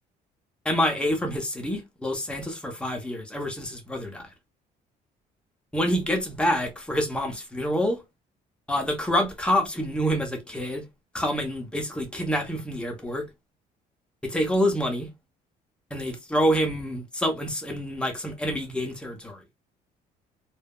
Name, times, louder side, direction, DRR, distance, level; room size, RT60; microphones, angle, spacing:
voice 1, 0.6-4.3 5.7-8.0 8.7-10.8 11.1-13.3 14.3-15.1 15.9-19.4, equal, 5° left, 0.8 m, -27 dB
3.2 x 2.0 x 2.3 m
cardioid pair, 110°, 17 cm